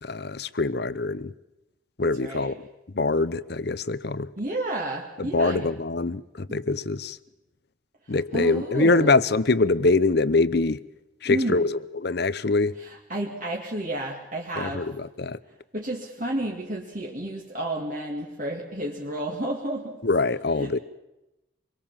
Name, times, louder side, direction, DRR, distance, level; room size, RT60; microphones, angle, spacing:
voice 1, 0.0-1.3 2.0-2.5 2.9-4.3 5.2-7.2 8.1-10.8 11.2-12.8 14.6-15.4 20.0-20.8, left 3 dB, 55° left, 0.8 m, -24 dB
voice 2, 2.0-2.6 4.4-5.7 6.5-6.6 8.3-9.2 11.2-11.6 12.8-14.9 15.7-20.0 20.6-20.7, right 1 dB, 40° right, 2.4 m, -31 dB
26.5 x 22.5 x 7.5 m
head